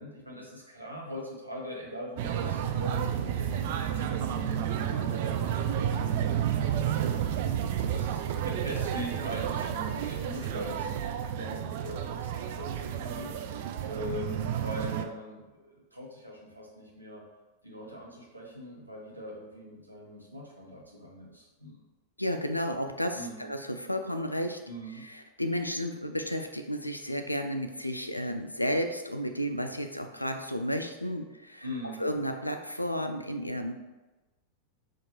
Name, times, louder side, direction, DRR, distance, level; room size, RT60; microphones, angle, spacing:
voice 1, 0.0-4.4 4.8-10.9 11.3-13.3 13.8-14.3 14.6-17.2 17.6-21.9 23.1-23.4 24.7-25.0 31.6-32.0, left 1 dB, 90° right, -4 dB, 0.9 m, -42 dB
sound 1, 2.2-15.1, right 9 dB, 50° right, 0.3 m, -31 dB
voice 2, 22.2-24.6 24.9-31.7 32.0-33.7, equal, 85° left, 6 dB, 0.3 m, -32 dB
5.9 x 2.5 x 2.9 m, 1.1 s
figure-of-eight pair, 90°, 0 cm